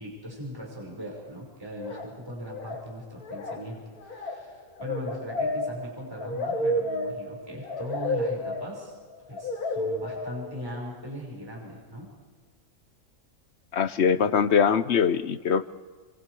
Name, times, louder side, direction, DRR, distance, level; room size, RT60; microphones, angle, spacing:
voice 1, 0.0-9.0 9.3-12.1, equal, 15° right, -2 dB, 5.5 m, -39 dB
sound 1, 1.8-2.2 2.5-2.9 3.2-10.8, left 1 dB, 70° left, 2.5 m, -32 dB
voice 2, 13.7-15.7, left 7 dB, 50° left, 12 dB, 1.0 m, -22 dB
26.5 x 25.5 x 4.8 m, 1.4 s
omnidirectional pair, 1.7 m